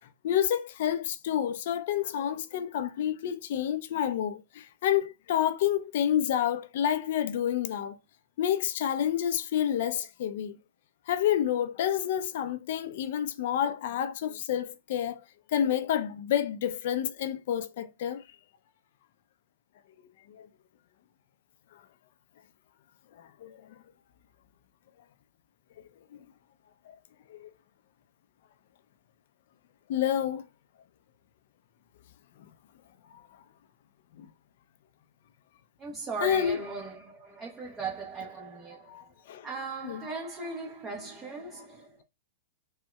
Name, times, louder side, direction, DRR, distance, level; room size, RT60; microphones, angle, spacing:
voice 1, 0.2-8.0 8.4-10.6 11.1-15.2 15.5-18.2 20.3-20.5 23.4-23.6 27.3-27.5 29.9-30.4 34.2-34.3 36.2-36.6 38.9-39.5 39.8-40.1, left 10 dB, 60° left, 0.5 m, -29 dB
voice 2, 35.8-38.9 39.4-42.0, right 4 dB, 20° right, 0.9 m, -38 dB
6.2 x 2.2 x 2.3 m
hypercardioid pair, 115°, 0 cm